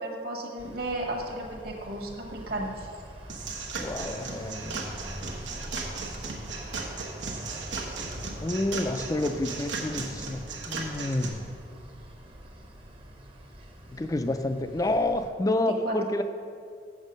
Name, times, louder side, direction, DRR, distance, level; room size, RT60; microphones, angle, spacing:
voice 1, 0.0-2.9 15.5-16.2, right 1 dB, 55° right, 1 dB, 1.3 m, -34 dB
sound 1, 0.6-15.3, right 1 dB, 30° right, 0.7 m, -44 dB
sound 2, 3.3-11.3, right 4 dB, 90° right, 1.1 m, -36 dB
voice 2, 3.8-5.3 8.4-11.4 13.9-16.2, left 2 dB, 20° left, 9 dB, 0.3 m, -29 dB
7.3 x 7.2 x 5.2 m, 2.2 s
head